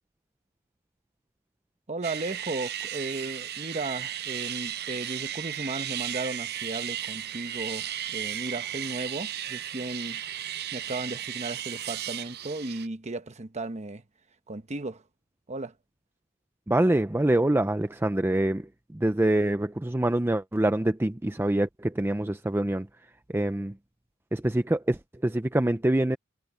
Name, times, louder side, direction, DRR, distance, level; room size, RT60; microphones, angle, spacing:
voice 1, 1.9-10.2 10.7-14.0 14.5-15.0 15.5-15.7, right 2 dB, 30° right, 1.0 m, -35 dB
sound 1, 2.0-12.9, right 11 dB, 50° right, 0.6 m, -35 dB
voice 2, 16.7-23.8 24.3-26.2, right 1 dB, 10° right, 0.5 m, -25 dB
head